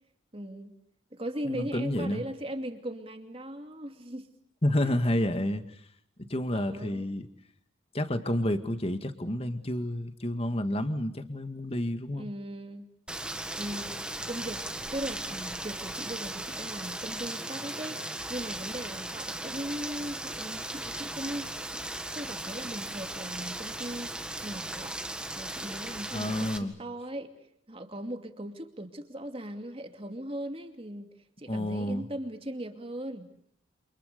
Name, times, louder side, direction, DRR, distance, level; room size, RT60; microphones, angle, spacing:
voice 1, 0.3-0.7 1.1-4.3 4.8-5.0 6.5-7.1 12.1-12.9 13.2-14.0 14.3-14.6 14.9-21.9 22.1-24.9 25.4-27.3 27.7-31.1 31.4-33.3, right 1 dB, 30° right, 6 dB, 2.5 m, -39 dB
voice 2, 1.5-2.2 4.6-5.6 6.3-7.3 7.9-12.3 26.1-26.7 31.5-32.1, left 1 dB, 30° left, 9 dB, 1.9 m, -29 dB
Rain, 13.1-26.6, right 1 dB, 5° right, 1.8 m, -37 dB
29.0 x 27.5 x 6.8 m, 0.69 s
head